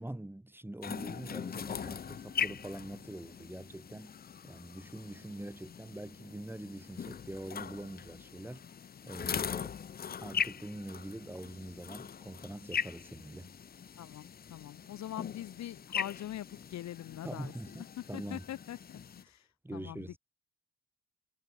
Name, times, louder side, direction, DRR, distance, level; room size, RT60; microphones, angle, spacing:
voice 1, 0.0-4.2 4.4-8.6 9.0-9.7 10.2-13.5 17.2-18.4 19.6-20.2, right 1 dB, 5° right, 1.6 m, -44 dB
sound 1, 0.8-19.2, left 7 dB, 30° left, 0.6 m, -41 dB
voice 2, 14.0-17.5 18.0-20.1, left 13 dB, 65° left, 0.8 m, -43 dB
cardioid pair, 90°, 30 cm